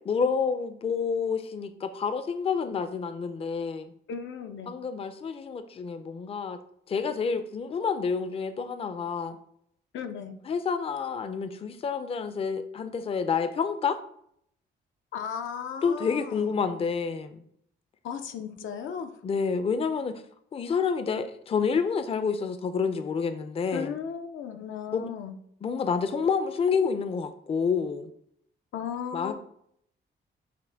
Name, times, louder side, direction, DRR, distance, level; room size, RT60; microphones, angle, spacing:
voice 1, 0.1-3.9 4.7-6.6 6.9-9.4 10.5-14.0 15.8-17.4 19.2-20.2 20.5-23.9 24.9-25.1 25.6-28.1 29.1-29.3, left 5 dB, 30° left, 10 dB, 0.4 m, -28 dB
voice 2, 4.1-4.7 9.9-10.4 15.1-16.5 18.0-19.1 23.7-25.4 28.7-29.3, left 7 dB, 85° left, 7 dB, 0.5 m, -35 dB
5.7 x 2.2 x 3.3 m, 0.69 s
cardioid pair, 100°, 20 cm